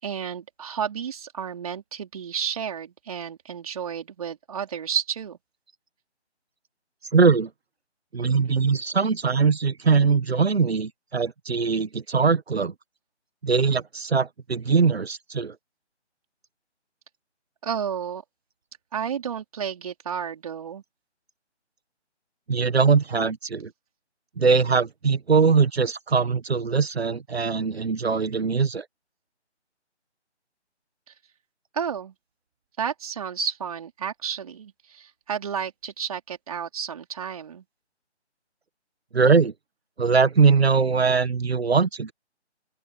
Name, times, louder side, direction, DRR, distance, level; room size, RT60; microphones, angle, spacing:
voice 1, 0.0-5.4 17.6-18.2 18.9-20.8 31.7-32.1 32.8-37.6, right 7 dB, 30° right, 4.6 m, -31 dB
voice 2, 7.1-7.5 8.1-12.7 13.4-15.5 22.5-23.7 24.4-28.8 39.1-39.5 40.0-42.1, right 5 dB, 60° right, 1.5 m, -21 dB
open air
figure-of-eight pair, 165°, 35 cm